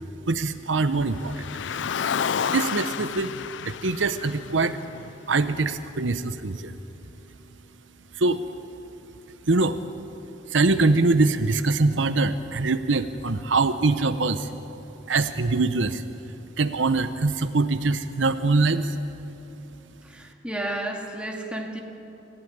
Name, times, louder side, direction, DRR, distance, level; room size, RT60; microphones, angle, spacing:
voice 1, 0.3-1.4 2.5-3.3 3.6-4.8 5.3-6.7 8.2-8.4 9.5-9.8 10.5-14.5 15.1-16.0 16.6-18.9, right 3 dB, 80° right, 11 dB, 0.9 m, -23 dB
Car, 1.1-5.5, left 7 dB, 75° left, 0.5 m, -30 dB
voice 2, 20.0-21.8, right 1 dB, 5° right, 1 dB, 2.4 m, -32 dB
27.0 x 15.5 x 9.6 m, 3.0 s
head